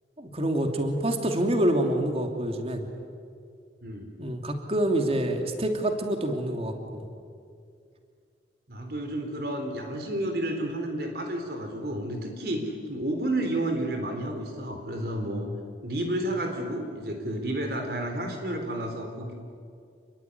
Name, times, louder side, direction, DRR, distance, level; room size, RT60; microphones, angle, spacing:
voice 1, 0.2-2.9 4.2-7.1, right 1 dB, 35° right, 4 dB, 2.8 m, -27 dB
voice 2, 3.8-4.1 8.7-15.5 15.8-19.3, right 1 dB, 60° right, 4 dB, 3.8 m, -31 dB
28.0 x 22.0 x 9.6 m, 2.3 s
head